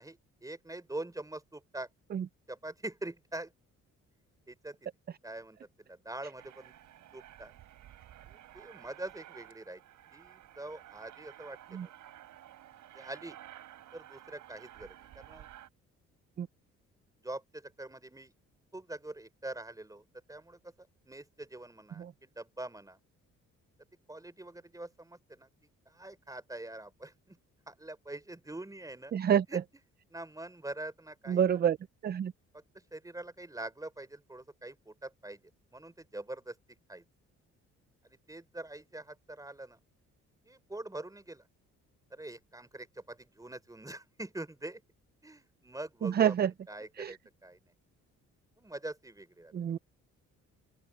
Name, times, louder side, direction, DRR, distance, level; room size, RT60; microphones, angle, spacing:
voice 1, 0.0-1.9 2.5-3.5 4.5-4.9 5.2-6.8 7.1-7.5 8.3-9.8 10.1-11.9 12.9-13.4 13.9-15.5 17.2-18.3 18.7-23.0 24.1-25.5 25.9-27.4 27.7-29.2 29.5-29.6 30.1-31.4 32.5-32.6 32.9-35.4 35.7-36.6 36.9-37.0 38.0-39.8 40.4-41.5 42.1-44.8 45.2-47.7 48.6-49.5, right 2 dB, 10° right, 5.0 m, -44 dB
Aircraft, 6.4-15.7, right 13 dB, 80° right, 3.9 m, -53 dB
voice 2, 29.1-29.4 31.3-31.8 32.0-32.3 46.0-46.5 47.0-47.2 49.5-49.8, right 9 dB, 35° right, 0.4 m, -27 dB
open air
cardioid pair, 90°, 30 cm